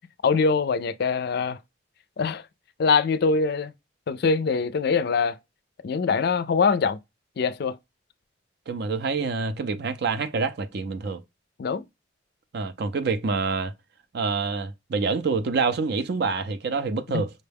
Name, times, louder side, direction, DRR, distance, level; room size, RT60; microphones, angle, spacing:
voice 1, 0.2-1.6 2.2-2.4 2.8-3.7 4.1-5.4 5.8-7.0 7.4-7.8 11.6-11.9 17.1-17.2, left 5 dB, 55° left, 0.4 m, -23 dB
voice 2, 8.7-11.2 12.5-13.7 14.1-17.3, right 4 dB, 55° right, 0.5 m, -27 dB
5.3 x 2.1 x 3.4 m
head